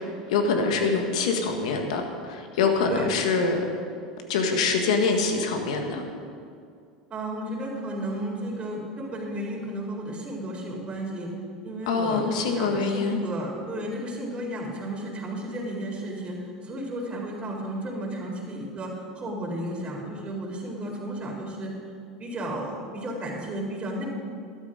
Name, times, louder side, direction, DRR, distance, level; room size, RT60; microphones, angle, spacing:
voice 1, 0.3-3.6 4.3-6.0 11.9-13.2, left 4 dB, 70° left, 4 dB, 1.7 m, -24 dB
voice 2, 7.1-11.3 11.6-16.4 16.6-21.7 22.2-24.0, right 1 dB, 30° right, -2 dB, 4.0 m, -33 dB
12.5 x 12.0 x 5.1 m, 2.3 s
hypercardioid pair, 80°, 4 cm